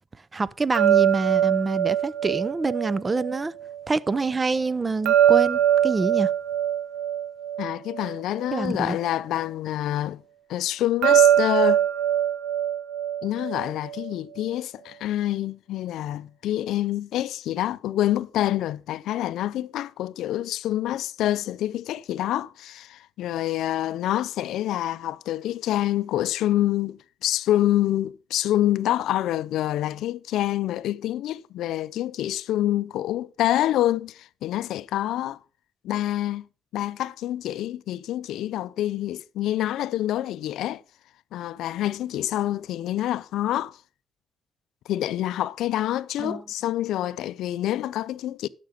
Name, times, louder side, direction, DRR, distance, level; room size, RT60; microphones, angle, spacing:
voice 1, 0.3-3.5 3.9-6.3 8.5-9.0 46.2-46.4, right 3 dB, 25° right, 0.5 m, -26 dB
sound 1, 0.7-3.8 5.1-8.6 11.0-14.1, right 10 dB, 90° right, 0.6 m, -22 dB
voice 2, 7.6-10.2 10.5-11.8 13.2-35.4 35.8-36.4 36.7-40.8 41.3-43.8 44.9-48.5, left 13 dB, 85° left, 0.4 m, -27 dB
11.5 x 5.9 x 5.0 m
cardioid pair, 90°, 0 cm